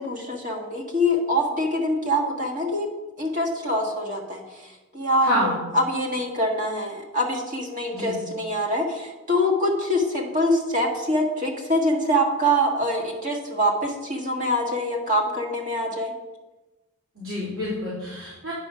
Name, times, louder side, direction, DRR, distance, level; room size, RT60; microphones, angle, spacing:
voice 1, 0.0-2.9 3.2-4.4 4.9-16.1, equal, 35° right, 0 dB, 1.7 m, -24 dB
voice 2, 5.2-5.6 7.9-8.2 17.2-18.5, equal, 80° right, -11 dB, 3.6 m, -27 dB
9.3 x 5.7 x 6.0 m, 1.1 s
head